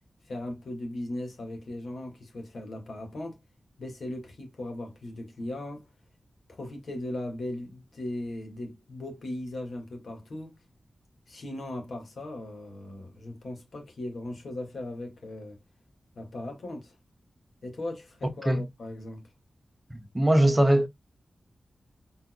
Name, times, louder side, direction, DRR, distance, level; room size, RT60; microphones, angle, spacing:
voice 1, 0.3-3.4 3.8-5.9 6.5-10.6 11.3-15.6 16.2-16.9 17.6-19.2, left 1 dB, 65° left, 2.0 m, -38 dB
voice 2, 19.9-20.9, right 1 dB, 10° right, 1.1 m, -21 dB
4.3 x 4.1 x 2.3 m
wide cardioid pair, 145°, 0 cm